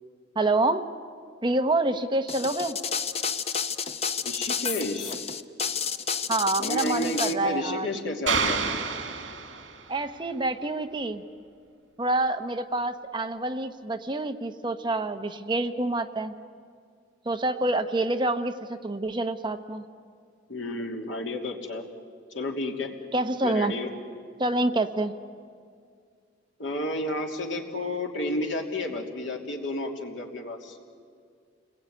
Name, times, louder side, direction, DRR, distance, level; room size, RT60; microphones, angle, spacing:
voice 1, 0.3-0.8 1.4-2.8 6.3-7.9 9.9-11.2 12.0-16.3 17.2-19.8 23.1-23.7 24.4-25.1, right 2 dB, 25° right, 7 dB, 1.0 m, -27 dB
sound 1, 2.3-7.3, left 6 dB, 35° left, 0.8 m, -30 dB
voice 2, 4.2-5.1 6.6-8.6 20.5-21.8 22.3-22.9 23.4-23.9 26.6-30.8, left 1 dB, 80° left, 2 dB, 3.1 m, -31 dB
sound 2, 8.3-10.0, right 5 dB, 75° right, 2.4 m, -28 dB
30.0 x 21.0 x 9.5 m, 2.2 s
head